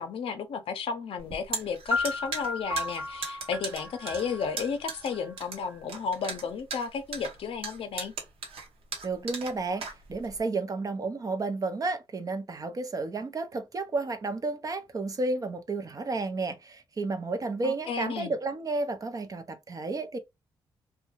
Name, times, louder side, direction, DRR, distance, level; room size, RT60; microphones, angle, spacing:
voice 1, 0.0-8.1 17.6-18.3, left 6 dB, 70° left, 0.6 m, -33 dB
sound 1, 1.2-10.4, right 5 dB, 75° right, 0.9 m, -38 dB
sound 2, 1.9-5.8, left 3 dB, 20° right, 1.0 m, -35 dB
voice 2, 9.0-20.2, right 3 dB, 35° right, 0.6 m, -32 dB
2.6 x 2.2 x 2.9 m
cardioid pair, 65°, 10 cm